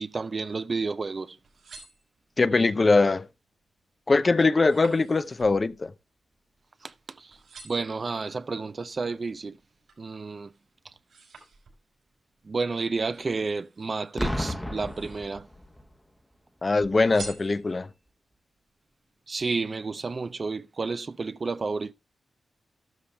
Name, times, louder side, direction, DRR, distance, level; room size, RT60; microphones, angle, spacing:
voice 1, 0.0-1.4 6.8-7.4 7.6-9.6 10.0-10.5 12.4-15.5 19.3-21.9, right 4 dB, 45° right, 0.5 m, -31 dB
sound 1, 1.4-2.6 3.1-3.5 3.9-7.0 7.3-8.0 8.6-10.1 10.5-12.1 13.0-14.1 14.6-15.4 15.8-16.5 17.0-18.0 18.6-18.7, right 4 dB, 85° right, 5.2 m, -49 dB
voice 2, 2.4-3.3 4.1-5.9 16.6-17.9, left 3 dB, 40° left, 0.6 m, -22 dB
Boom, 14.2-15.9 16.8-17.1, left 1 dB, 5° left, 1.0 m, -32 dB
13.0 x 12.0 x 2.2 m
cardioid pair, 65°, 0 cm